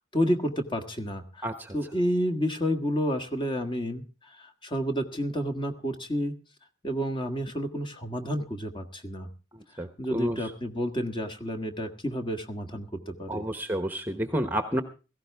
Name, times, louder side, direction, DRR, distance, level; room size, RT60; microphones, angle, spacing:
voice 1, 0.1-6.3 6.8-9.3 9.7-13.5, equal, 25° left, 5 dB, 1.5 m, -30 dB
voice 2, 1.4-1.7 9.8-10.4 13.3-14.8, equal, 10° right, 8 dB, 1.0 m, -30 dB
17.0 x 15.5 x 3.5 m, 0.34 s
head